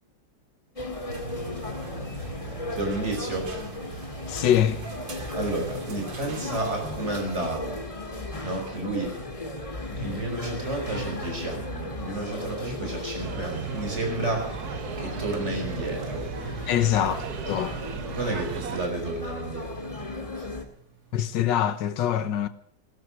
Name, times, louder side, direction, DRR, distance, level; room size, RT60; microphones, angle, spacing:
sound 1, 0.8-20.6, left 2 dB, 20° left, 1.9 m, -36 dB
sound 2, 1.1-7.6, right 3 dB, 85° right, 3.0 m, -41 dB
voice 1, 2.7-3.5 3.9-4.0 5.3-7.8 8.4-9.2 9.9-14.6 15.0-16.3 18.1-19.9 20.3-20.5, right 2 dB, 35° right, 5.6 m, -31 dB
voice 2, 4.3-4.8 16.7-17.7 21.1-22.5, left 10 dB, 80° left, 1.7 m, -24 dB
sound 3, 13.2-18.9, right 8 dB, 60° right, 1.4 m, -36 dB
16.5 x 13.5 x 6.4 m
omnidirectional pair, 2.0 m